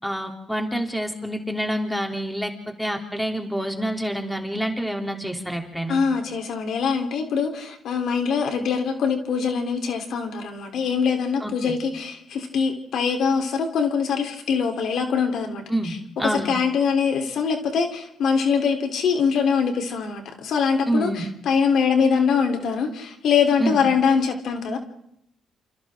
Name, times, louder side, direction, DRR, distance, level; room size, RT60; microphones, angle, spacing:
voice 1, 0.0-6.0 11.4-11.8 15.7-16.5 20.9-21.2 23.6-23.8, right 1 dB, ahead, 3 dB, 3.4 m, -27 dB
voice 2, 5.9-16.0 16.2-24.8, left 6 dB, 70° left, 4 dB, 3.7 m, -23 dB
28.5 x 27.0 x 3.8 m, 0.77 s
cardioid pair, 100°, 0 cm